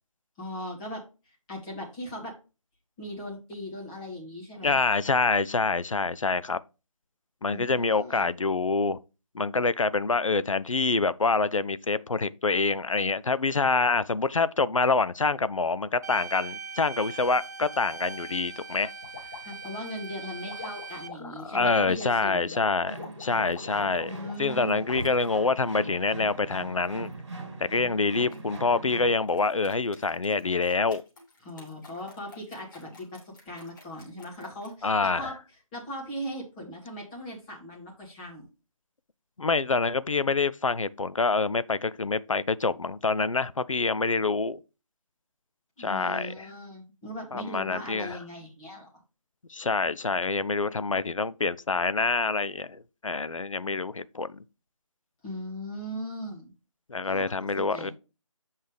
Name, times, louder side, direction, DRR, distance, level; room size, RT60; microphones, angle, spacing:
voice 1, 0.4-2.3 3.0-4.8 7.5-8.3 19.4-22.5 24.0-24.9 31.4-35.4 35.7-38.4 45.8-48.9 55.2-56.5 57.0-57.9, equal, 10° left, 1.5 m, -39 dB
voice 2, 4.6-6.6 7.4-9.0 9.3-18.9 21.2-27.1 27.6-31.0 34.8-35.3 39.4-44.6 45.8-46.5 47.3-48.2 49.5-54.4 56.9-57.9, left 4 dB, 65° left, 0.6 m, -26 dB
sound 1, 16.0-21.1, right 5 dB, 30° right, 0.7 m, -41 dB
sound 2, 19.0-25.3 25.9-27.2 28.3-28.9 29.3-34.7, left 3 dB, 35° left, 3.0 m, -44 dB
sound 3, 22.9-29.3, right 2 dB, 55° right, 2.1 m, -41 dB
8.0 x 5.4 x 3.4 m
figure-of-eight pair, 160°, 18 cm